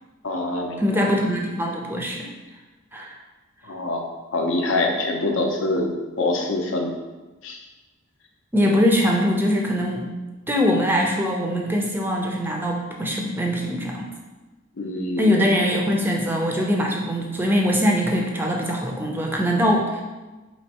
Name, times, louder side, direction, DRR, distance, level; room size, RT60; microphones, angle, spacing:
voice 1, 0.2-0.8 3.6-4.0 4.3-6.9 7.4-7.6 14.8-15.3, left 2 dB, 65° left, 2 dB, 0.6 m, -25 dB
voice 2, 0.8-2.3 2.9-3.1 8.5-10.1 10.5-14.1 15.2-20.0, equal, 10° right, 0 dB, 0.4 m, -22 dB
4.3 x 3.1 x 2.8 m, 1.2 s
head